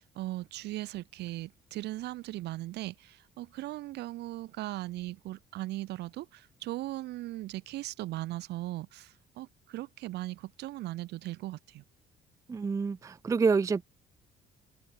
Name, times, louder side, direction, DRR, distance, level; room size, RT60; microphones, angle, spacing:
voice 1, 0.0-11.8, right 17 dB, 80° right, 6.7 m, -38 dB
voice 2, 12.5-13.8, right 5 dB, 20° right, 0.4 m, -27 dB
cardioid pair, 110°, 17 cm